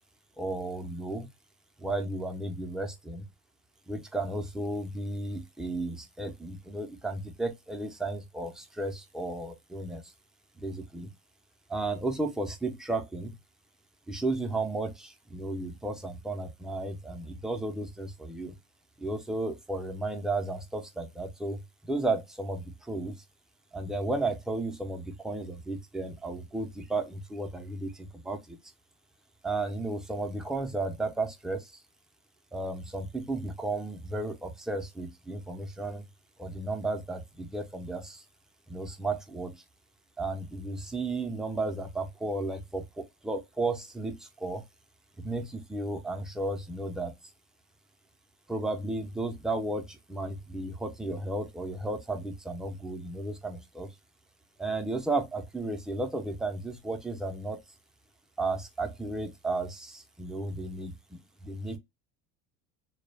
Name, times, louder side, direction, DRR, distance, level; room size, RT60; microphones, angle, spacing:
voice 1, 0.4-1.3 1.8-3.3 3.9-10.0 10.6-11.1 11.7-13.4 14.1-18.6 19.0-23.2 23.7-28.6 29.4-31.7 32.5-36.0 36.4-38.2 38.7-39.6 40.2-44.6 45.2-47.1 48.5-53.9 54.6-57.6 58.4-61.8, right 2 dB, ahead, 0.3 m, -34 dB
2.2 x 2.0 x 3.2 m
supercardioid pair, 110°, 35 cm